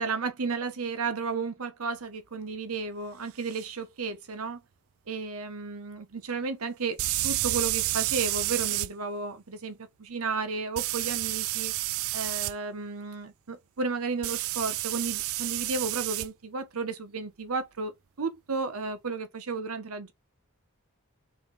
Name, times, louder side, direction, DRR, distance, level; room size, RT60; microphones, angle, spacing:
voice 1, 0.0-4.6 5.1-11.7 12.1-20.1, right 4 dB, 90° right, 1.0 m, -33 dB
sound 1, 3.5-3.6 7.0-8.9 10.8-12.5 14.2-16.3, right 17 dB, 70° right, 0.3 m, -30 dB
4.4 x 3.5 x 3.3 m
head